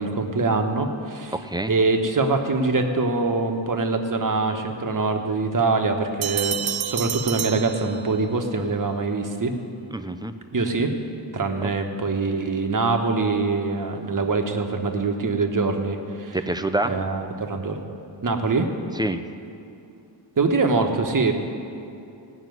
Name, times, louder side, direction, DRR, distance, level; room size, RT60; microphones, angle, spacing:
voice 1, 0.0-1.3 1.6-9.5 10.5-10.9 11.3-16.4 16.8-17.8 18.2-18.7 20.4-21.3, right 3 dB, 40° right, 5 dB, 1.3 m, -24 dB
voice 2, 1.3-1.7 9.9-10.3 16.3-16.9 18.9-19.2, right 1 dB, 10° right, 9 dB, 0.5 m, -26 dB
sound 1, 6.2-8.4, right 10 dB, 75° right, 0.7 m, -29 dB
17.0 x 6.1 x 9.4 m, 2.7 s
wide cardioid pair, 95°, 47 cm